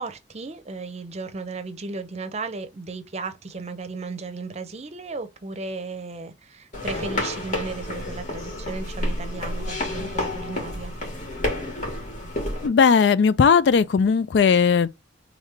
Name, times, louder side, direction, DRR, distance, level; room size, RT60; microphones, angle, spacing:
voice 1, 0.0-10.9, right 3 dB, 35° right, 0.6 m, -35 dB
sound 1, 6.7-12.7, left 1 dB, 45° left, 2.1 m, -30 dB
voice 2, 12.6-14.9, left 6 dB, 70° left, 0.4 m, -17 dB
3.6 x 3.6 x 3.1 m
head